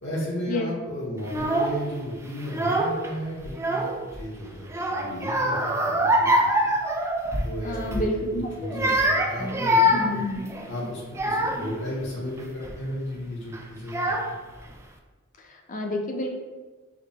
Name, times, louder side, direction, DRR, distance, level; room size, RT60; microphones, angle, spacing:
voice 1, 0.0-6.7 7.4-8.1 8.3-10.2 10.7-14.1, equal, 60° left, -5 dB, 1.0 m, -34 dB
Child speech kid speaking / Crying sobbing, 1.2-1.8 2.4-3.1 3.4-4.2 4.7-7.5 7.9-8.1 8.6-11.8 12.4-12.8 13.5-13.6 13.9-14.6, equal, 15° right, 0.3 m, -24 dB
voice 2, 7.6-8.9 9.9-10.6 15.4-16.3, left 1 dB, 40° left, 2 dB, 0.5 m, -30 dB
4.8 x 2.1 x 3.4 m, 1.3 s
head